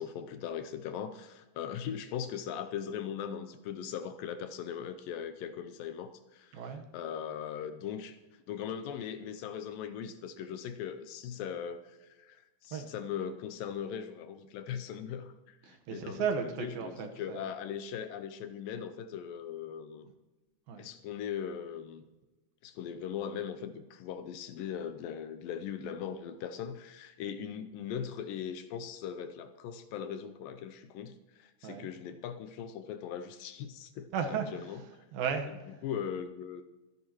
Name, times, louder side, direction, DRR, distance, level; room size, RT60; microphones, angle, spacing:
voice 1, 0.0-6.6 6.9-16.3 16.6-20.1 20.8-22.0 22.6-34.8 35.8-36.6, left 8 dB, 80° left, 10 dB, 2.2 m, -39 dB
voice 2, 6.5-6.8 12.7-12.9 15.6-17.5 20.7-20.9 31.6-31.9 34.1-34.5 35.1-35.8, right 6 dB, 75° right, 5 dB, 2.9 m, -35 dB
25.0 x 10.5 x 3.0 m, 1.1 s
omnidirectional pair, 4.3 m